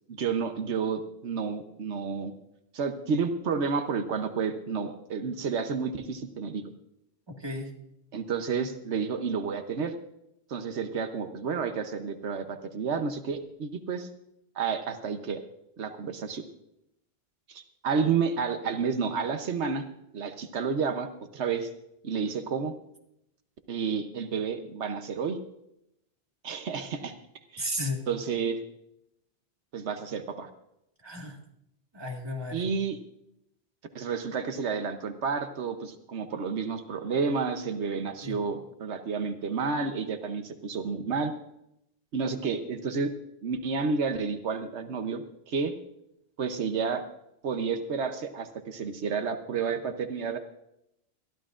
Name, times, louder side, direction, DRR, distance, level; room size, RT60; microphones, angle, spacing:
voice 1, 0.1-2.3 2.7-6.6 8.1-9.9 10.5-14.1 14.5-15.4 15.8-16.5 17.5-19.8 20.1-21.7 22.0-22.7 23.7-25.4 26.4-27.1 27.5-27.7 28.1-28.6 29.7-30.5 32.5-33.0 33.9-41.3 42.1-43.1 43.4-45.7 46.4-47.0 47.4-50.4, right 5 dB, 85° right, 8 dB, 1.2 m, -30 dB
voice 2, 7.3-7.7 27.6-28.0 31.0-31.4 31.9-32.7 38.2-38.4, left 1 dB, 25° right, 1 dB, 1.8 m, -34 dB
22.0 x 13.5 x 2.5 m, 0.80 s
omnidirectional pair, 1.1 m